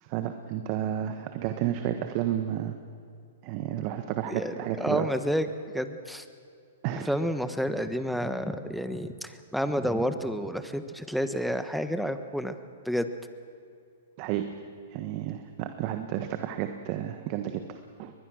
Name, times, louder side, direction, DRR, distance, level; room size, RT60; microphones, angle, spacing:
voice 1, 0.0-2.8 3.4-5.1 6.8-7.1 14.2-14.5 14.9-18.1, right 11 dB, 45° right, 7 dB, 1.3 m, -31 dB
voice 2, 4.8-5.5 5.7-6.2 7.0-12.6 12.8-13.1, equal, ahead, 9 dB, 1.2 m, -30 dB
22.5 x 21.0 x 6.3 m, 2.4 s
hypercardioid pair, 130°, 0 cm